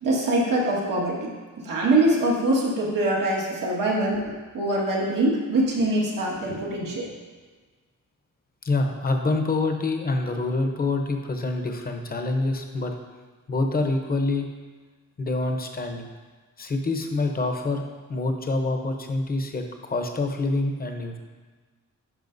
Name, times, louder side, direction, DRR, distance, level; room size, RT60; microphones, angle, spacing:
voice 1, 0.0-7.1, right 1 dB, 85° right, -4 dB, 1.7 m, -24 dB
voice 2, 8.6-12.9 13.5-14.5 15.2-16.1 16.6-17.8 18.1-21.2, left 2 dB, 30° left, 4 dB, 0.7 m, -26 dB
10.5 x 5.6 x 2.6 m, 1.4 s
wide cardioid pair, 140°, 32 cm